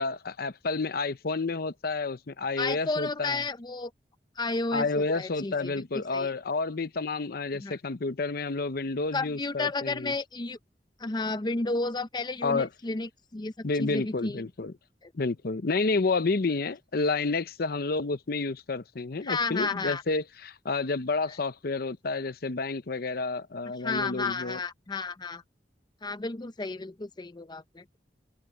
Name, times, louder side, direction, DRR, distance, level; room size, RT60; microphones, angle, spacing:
voice 1, 0.0-3.4 4.7-10.1 12.4-12.7 13.6-14.7 15.1-24.6, left 3 dB, 60° left, 0.7 m, -30 dB
voice 2, 2.6-3.9 4.4-6.3 7.6-7.8 9.1-10.6 11.0-14.4 15.0-15.1 19.2-20.0 23.8-25.4 26.0-27.8, left 3 dB, 25° left, 0.6 m, -32 dB
head